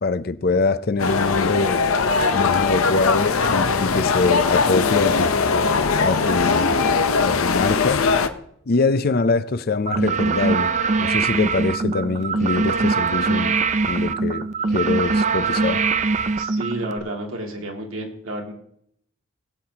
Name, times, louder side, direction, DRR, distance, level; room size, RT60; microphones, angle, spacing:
voice 1, 0.0-1.8 2.3-5.4 6.0-8.0 8.7-10.7 11.0-13.6 13.9-15.8, left 3 dB, 50° left, 0.5 m, -23 dB
sound 1, 1.0-8.3, left 4 dB, 85° left, 0.8 m, -20 dB
sound 2, 9.9-17.0, right 4 dB, 35° right, 0.4 m, -22 dB
voice 2, 16.4-18.5, right 1 dB, 75° right, 2.3 m, -31 dB
21.0 x 8.3 x 2.9 m
head